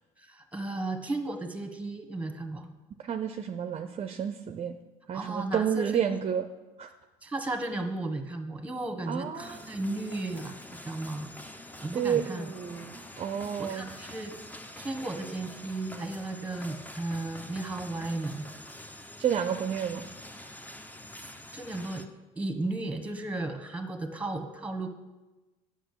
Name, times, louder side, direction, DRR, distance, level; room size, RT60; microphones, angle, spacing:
voice 1, 0.2-2.7 5.1-6.1 7.2-11.3 11.8-12.5 13.6-14.3 14.8-18.5 21.1-22.0 22.4-24.9, right 2 dB, 10° right, 7 dB, 1.4 m, -35 dB
voice 2, 3.0-4.7 5.1-6.5 6.8-6.9 9.1-9.6 11.9-13.9 19.2-20.1, right 8 dB, 40° right, 8 dB, 0.6 m, -30 dB
sound 1, 9.4-22.1, left 1 dB, 10° left, 0.8 m, -46 dB
8.0 x 6.3 x 6.7 m, 1.1 s
supercardioid pair, 85°, 16 cm